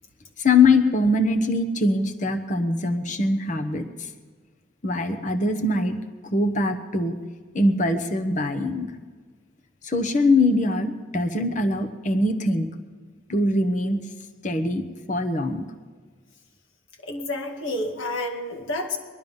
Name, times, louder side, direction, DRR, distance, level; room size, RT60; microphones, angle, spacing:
voice 1, 0.4-4.1 4.8-6.0 6.2-7.2 7.5-8.9 9.8-12.7 13.3-14.0 14.4-15.6, left 2 dB, 40° left, 7 dB, 1.1 m, -22 dB
voice 2, 17.0-19.0, left 1 dB, 85° left, 2 dB, 2.2 m, -29 dB
20.5 x 12.5 x 5.4 m, 1.5 s
head